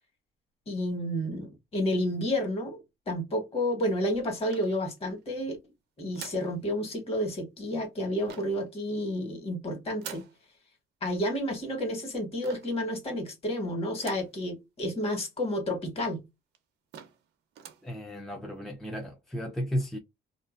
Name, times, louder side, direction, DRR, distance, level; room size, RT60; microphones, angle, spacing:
voice 1, 0.7-5.6 6.0-10.2 11.0-16.2, equal, 35° left, 1.4 m, -30 dB
sound 1, 4.5-5.2 6.1-6.6 8.2-8.7 10.0-10.4 12.4-12.8 14.0-14.4 14.9-15.0 15.2-15.3 16.0-16.1 16.5-16.6 16.9-17.3 17.5-17.9, right 9 dB, 80° right, 0.7 m, -45 dB
voice 2, 17.8-20.0, equal, ahead, 0.5 m, -34 dB
2.5 x 2.4 x 2.4 m
cardioid pair, 110°, 17 cm